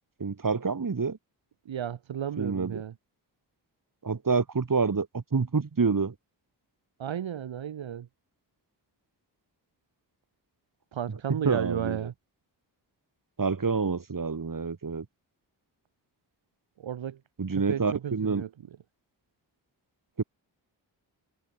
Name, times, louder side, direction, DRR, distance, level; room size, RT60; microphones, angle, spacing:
voice 1, 0.2-1.2 2.4-2.8 4.0-6.1 11.3-12.1 13.4-15.0 17.4-18.4 20.2-20.3, right 5 dB, 45° right, 3.2 m, -27 dB
voice 2, 1.6-2.9 7.0-8.1 10.9-12.1 16.8-17.2 17.5-18.5, right 9 dB, 80° right, 1.8 m, -33 dB
cardioid pair, 55°, 45 cm